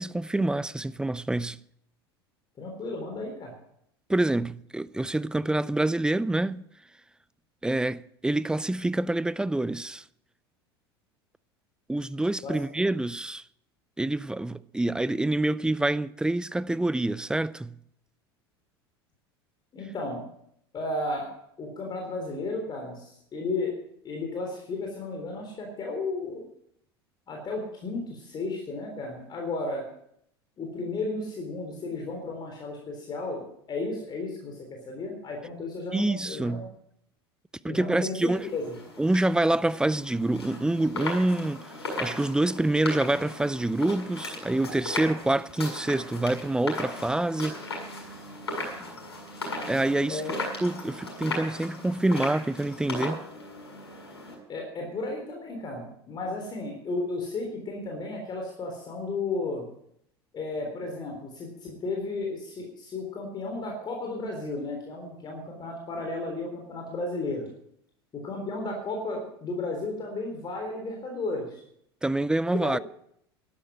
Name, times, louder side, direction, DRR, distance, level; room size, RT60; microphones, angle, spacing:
voice 1, 0.0-1.6 4.1-6.6 7.6-10.0 11.9-13.4 14.0-17.8 35.9-36.7 37.6-38.5 39.0-41.7 42.0-47.6 49.7-50.2 50.6-53.2 72.0-72.8, right 2 dB, 5° right, 0.5 m, -26 dB
voice 2, 2.6-3.6 12.4-12.6 19.7-20.2 20.7-21.3 21.6-23.7 24.0-26.5 27.3-29.8 30.6-36.6 37.7-38.7 50.1-50.3 54.5-59.6 60.3-67.5 68.1-71.6 72.5-72.7, left 3 dB, 35° left, 3.7 m, -34 dB
sound 1, 38.3-54.3, left 2 dB, 80° left, 6.8 m, -37 dB
12.5 x 11.5 x 7.5 m
figure-of-eight pair, 80°, 13 cm